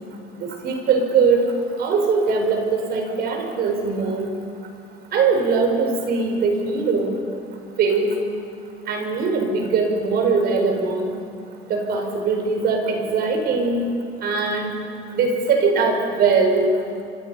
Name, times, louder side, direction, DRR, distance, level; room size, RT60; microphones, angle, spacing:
voice 1, 0.3-4.3 5.1-7.2 7.8-8.2 8.8-11.2 11.6-13.9 14.2-14.7 15.1-16.7, right 4 dB, 70° right, 3 dB, 4.9 m, -21 dB
28.5 x 24.0 x 5.7 m, 2.4 s
cardioid pair, 110°, 17 cm